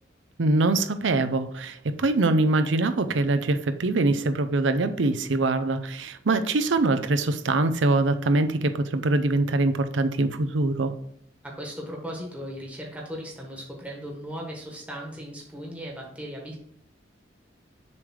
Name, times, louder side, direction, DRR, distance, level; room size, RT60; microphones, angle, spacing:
voice 1, 0.4-10.9, right 2 dB, 80° right, 10 dB, 0.6 m, -23 dB
voice 2, 11.4-16.6, equal, 10° right, -2 dB, 1.3 m, -37 dB
7.0 x 3.4 x 6.3 m, 0.67 s
head